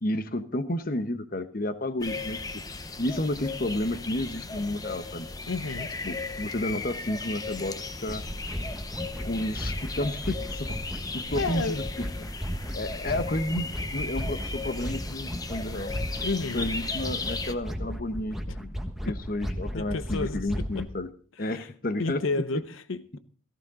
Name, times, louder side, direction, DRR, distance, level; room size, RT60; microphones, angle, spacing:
voice 1, 0.0-2.6 3.0-5.3 6.0-8.2 9.2-10.8 11.1-12.1 12.7-15.9 16.5-18.8 19.0-21.1 21.4-22.3 22.5-22.6, left 1 dB, 45° left, 1.0 m, -31 dB
sound 1, 2.0-17.5, left 3 dB, 20° left, 0.8 m, -36 dB
voice 2, 5.5-5.9 11.4-11.8 16.2-16.7 19.1-19.2 19.7-20.9 21.4-21.7 22.0-23.2, left 3 dB, 80° left, 0.7 m, -31 dB
sound 2, 8.1-20.9, equal, ahead, 1.4 m, -35 dB
17.0 x 14.5 x 3.7 m
head